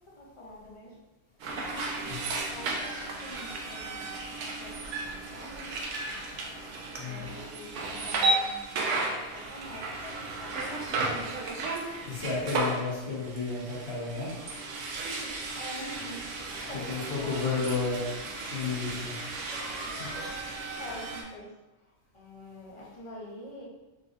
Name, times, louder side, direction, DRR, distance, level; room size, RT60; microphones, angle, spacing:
voice 1, 0.1-1.0 1.3-5.7 7.0-8.8 9.2-11.2 15.0-17.6 18.3-18.9 19.3-19.6 19.9-23.7, equal, 30° left, -5 dB, 0.7 m, -46 dB
sound 1, 1.4-21.2, right 2 dB, 80° right, 0.9 m, -34 dB
voice 2, 2.1-2.5 7.0-7.2 11.8-14.3 16.9-18.1 18.5-19.1 19.8-19.9, left 4 dB, 60° left, -7 dB, 1.4 m, -32 dB
3.8 x 2.4 x 2.5 m, 1.0 s
omnidirectional pair, 1.3 m